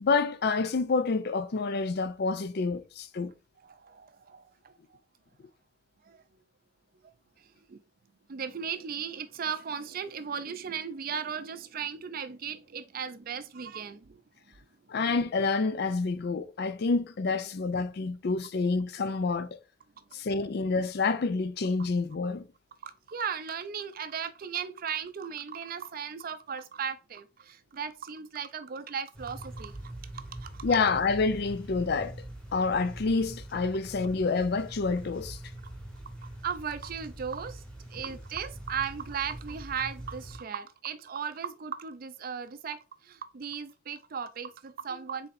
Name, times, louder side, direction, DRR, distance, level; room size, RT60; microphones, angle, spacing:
voice 1, 0.0-3.3 14.9-19.6 20.1-22.5 30.6-32.1 32.5-35.4, left 4 dB, 55° left, 0.4 m, -28 dB
voice 2, 3.6-4.7 6.0-6.2 7.0-7.8 8.3-14.2 22.8-30.6 36.2-37.6 37.9-45.3, right 7 dB, 50° right, 0.5 m, -37 dB
sound 1, 29.1-40.4, right 1 dB, 5° left, 1.3 m, -43 dB
4.2 x 4.0 x 2.6 m
head